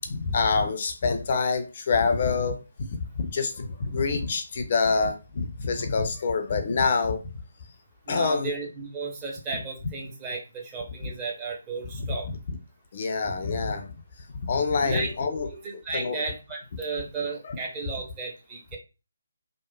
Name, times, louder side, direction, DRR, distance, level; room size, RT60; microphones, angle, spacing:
voice 1, 0.0-2.6 3.2-7.2 8.1-8.5 11.0-11.1 11.9-12.2 12.9-13.9 14.4-15.5 15.9-16.2 17.4-17.6, left 4 dB, 40° left, 7 dB, 0.4 m, -26 dB
voice 2, 8.1-12.3 14.8-15.1 15.6-18.8, right 3 dB, 20° right, -2 dB, 0.8 m, -34 dB
2.9 x 2.0 x 2.3 m, 0.30 s
figure-of-eight pair, 150°, 0 cm